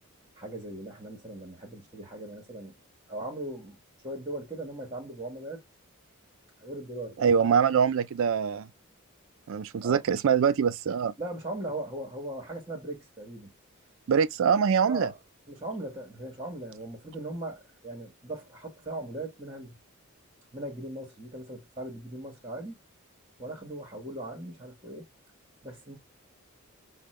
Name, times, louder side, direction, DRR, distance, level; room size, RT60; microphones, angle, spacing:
voice 1, 0.3-2.7 3.1-3.8 4.0-5.6 6.6-7.5 9.8-10.0 11.2-13.5 14.9-15.2 15.5-19.8 20.5-22.8 23.4-25.1 25.6-26.0, right 1 dB, 20° right, 1.2 m, -39 dB
voice 2, 7.2-8.7 9.5-11.1 14.1-15.1, right 7 dB, 60° right, 0.4 m, -24 dB
5.2 x 2.1 x 3.1 m
head